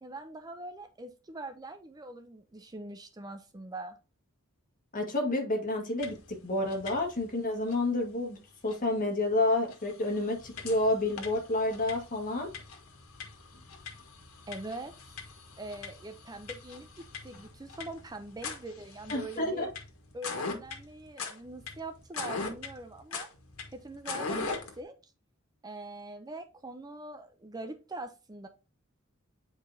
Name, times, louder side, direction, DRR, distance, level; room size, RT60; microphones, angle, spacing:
voice 1, 0.0-4.0 14.5-14.9 15.6-19.7 20.1-23.3 23.7-25.1 25.6-28.5, right 2 dB, 20° right, 9 dB, 0.5 m, -43 dB
voice 2, 4.9-8.4 8.6-12.5 19.1-19.7, left 2 dB, 40° left, 2 dB, 1.8 m, -29 dB
sound 1, 6.0-6.3 6.6-7.3 7.7-7.8 8.7-8.8 9.3-9.4 9.7-24.8, left 4 dB, 80° left, 1.6 m, -41 dB
8.7 x 4.7 x 2.7 m, 0.30 s
head